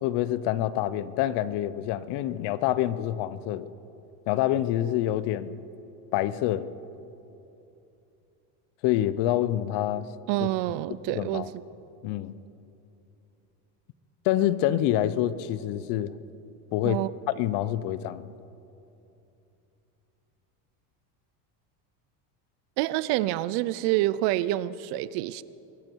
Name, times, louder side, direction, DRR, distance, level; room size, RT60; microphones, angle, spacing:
voice 1, 0.0-3.7 4.3-5.6 6.1-6.7 8.8-10.1 11.1-11.5 12.0-12.3 14.2-16.1 16.7-17.0 17.4-18.3, left 13 dB, 60° left, 0.7 m, -27 dB
voice 2, 10.3-11.4 16.8-17.1 22.8-25.4, right 16 dB, 60° right, 0.6 m, -27 dB
23.5 x 13.0 x 4.6 m
cardioid pair, 130°, 47 cm